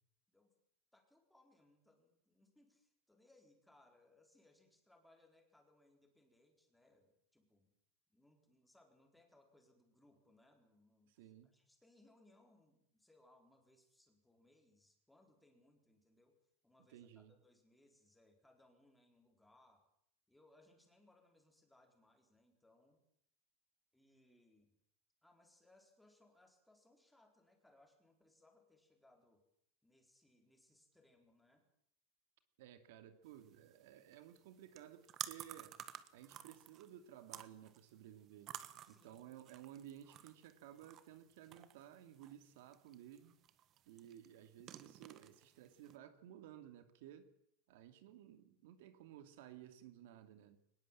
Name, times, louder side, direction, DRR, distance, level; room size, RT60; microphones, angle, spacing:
voice 1, 0.9-7.7 8.1-19.9 20.3-23.0 23.9-24.7 25.2-29.5 29.8-31.6 38.8-39.3, left 2 dB, 5° left, 3 dB, 4.3 m, -70 dB
voice 2, 11.1-11.5 16.9-17.3 32.6-35.8 36.1-38.6 38.9-43.4 43.9-47.3 47.7-50.6, right 11 dB, 70° right, 9 dB, 2.6 m, -56 dB
sound 1, 33.3-46.0, right 11 dB, 35° right, 1.4 m, -54 dB
23.5 x 20.0 x 7.5 m, 0.71 s
supercardioid pair, 160°, 0 cm